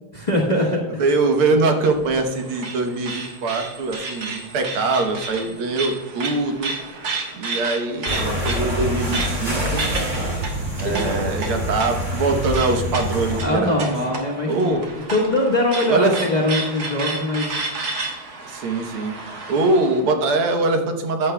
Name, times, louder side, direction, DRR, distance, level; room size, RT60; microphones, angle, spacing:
voice 1, 0.1-1.0 10.8-11.0 13.4-17.6, left 1 dB, 25° left, -2 dB, 1.1 m, -22 dB
voice 2, 1.0-6.7 7.3-9.8 10.8-13.9 14.5-14.9 15.9-16.2 18.4-19.1 19.5-21.3, right 3 dB, 80° right, 4 dB, 1.9 m, -22 dB
sound 1, 1.8-20.0, right 3 dB, 50° right, 1.6 m, -32 dB
sound 2, 8.1-13.4, equal, 25° right, 2.1 m, -25 dB
14.0 x 9.4 x 2.2 m, 1.2 s
omnidirectional pair, 2.3 m